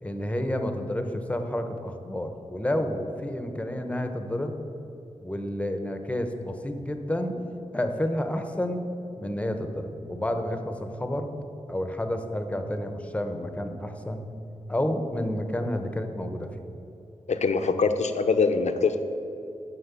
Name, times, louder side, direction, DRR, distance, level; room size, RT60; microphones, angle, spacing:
voice 1, 0.0-4.5 5.2-7.4 7.7-8.8 9.2-11.3 11.7-14.3 14.7-16.6, left 1 dB, 10° left, 6 dB, 1.0 m, -30 dB
voice 2, 17.3-19.0, left 4 dB, 65° left, 8 dB, 0.8 m, -23 dB
11.5 x 6.4 x 8.3 m, 2.9 s
wide cardioid pair, 95°, 13 cm